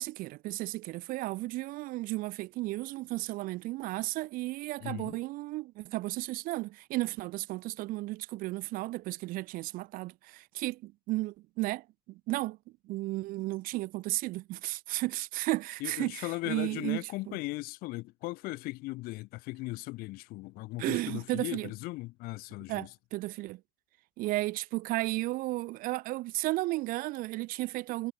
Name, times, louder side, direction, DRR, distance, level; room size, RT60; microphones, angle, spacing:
voice 1, 0.0-12.6 12.8-17.4 20.8-21.7 22.7-23.6 24.2-28.1, right 19 dB, 65° right, 2.1 m, -34 dB
voice 2, 4.8-5.2 15.8-22.9, left 21 dB, 70° left, 4.1 m, -38 dB
cardioid pair, 165°, 16 cm